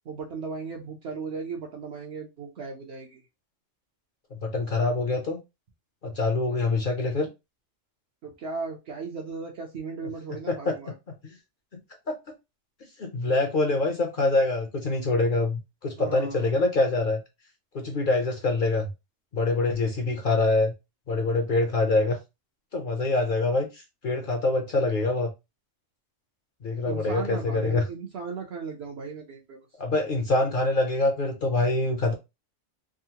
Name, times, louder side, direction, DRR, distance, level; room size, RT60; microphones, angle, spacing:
voice 1, 0.1-3.2 8.2-10.9 16.0-16.5 26.8-29.7, right 4 dB, 60° right, 0 dB, 0.9 m, -36 dB
voice 2, 4.3-5.4 6.0-7.3 10.5-10.7 12.1-12.2 13.0-17.2 17.7-18.9 19.3-20.7 21.1-22.2 22.7-25.3 26.6-27.8 29.8-32.1, left 2 dB, 50° left, 3 dB, 0.7 m, -25 dB
3.6 x 2.0 x 2.8 m, 0.24 s
omnidirectional pair, 1.3 m